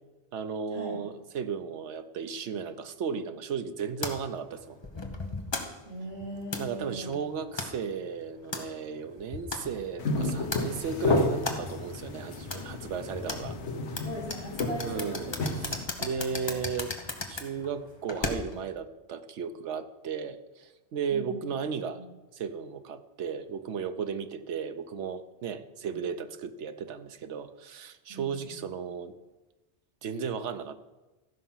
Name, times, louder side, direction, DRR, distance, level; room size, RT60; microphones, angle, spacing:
voice 1, 0.3-4.8 6.6-13.6 14.8-17.0 17.3-22.0 22.3-29.1 30.0-30.7, right 6 dB, 85° right, 10 dB, 1.1 m, -35 dB
sound 1, 4.0-18.7, left 2 dB, 25° left, 1.0 m, -38 dB
voice 2, 5.8-7.2 14.0-15.4 16.3-17.0 21.1-21.6 21.9-22.1 28.1-28.6, right 1 dB, 35° right, -6 dB, 4.3 m, -40 dB
sound 2, 10.0-15.8, left 2 dB, 80° left, 1.4 m, -31 dB
14.5 x 5.7 x 5.6 m, 1.1 s
omnidirectional pair, 1.2 m